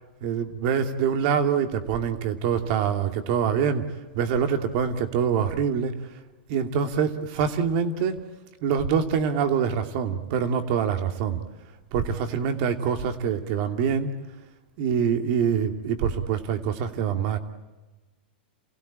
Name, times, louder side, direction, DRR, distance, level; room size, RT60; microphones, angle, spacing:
voice 1, 0.2-3.9 4.1-5.9 6.5-8.1 8.6-11.4 11.9-14.1 14.8-17.4, right 7 dB, 50° right, 6 dB, 2.6 m, -25 dB
28.5 x 16.5 x 8.9 m, 1.2 s
hypercardioid pair, 125°, 5 cm